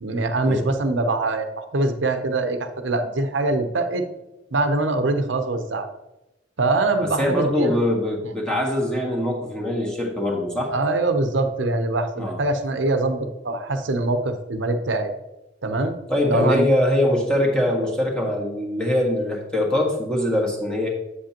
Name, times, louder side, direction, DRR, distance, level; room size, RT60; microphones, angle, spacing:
voice 1, 0.0-4.0 4.5-5.9 6.6-7.8 10.7-15.1 15.6-15.9 16.3-16.7, right 2 dB, 80° right, 7 dB, 0.7 m, -23 dB
voice 2, 7.2-10.7 12.2-12.4 16.1-20.9, left 1 dB, 5° left, -2 dB, 1.6 m, -22 dB
8.3 x 7.5 x 2.9 m, 0.95 s
head